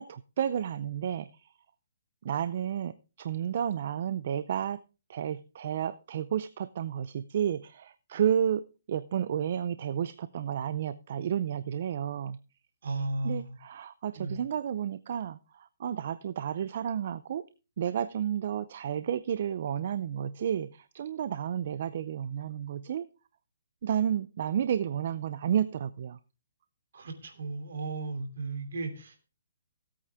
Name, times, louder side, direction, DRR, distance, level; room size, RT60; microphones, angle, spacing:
voice 1, 0.0-1.5 2.2-4.8 5.1-12.4 13.2-17.5 17.8-23.1 23.8-26.2, right 9 dB, 45° right, 15 dB, 0.5 m, -31 dB
voice 2, 12.8-13.6 14.1-14.4 26.9-29.2, right 2 dB, 65° right, 7 dB, 2.9 m, -35 dB
16.0 x 8.6 x 3.5 m, 0.32 s
hypercardioid pair, 165°, 0 cm